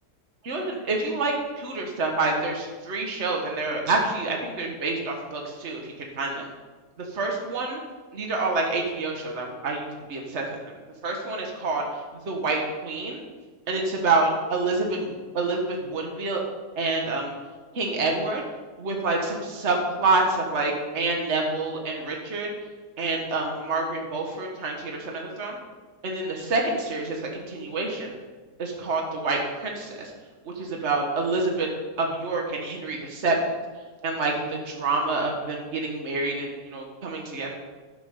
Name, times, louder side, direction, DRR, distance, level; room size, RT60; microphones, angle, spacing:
voice 1, 0.4-6.5 7.0-7.8 8.1-10.6 11.0-11.9 12.3-13.2 13.7-16.4 16.8-17.3 17.7-18.4 18.8-22.5 23.0-25.6 26.0-28.2 28.6-30.1 30.4-31.7 32.0-33.4 34.0-37.5, right 3 dB, 40° right, 1 dB, 1.9 m, -27 dB
12.0 x 11.5 x 3.9 m, 1.3 s
omnidirectional pair, 1.8 m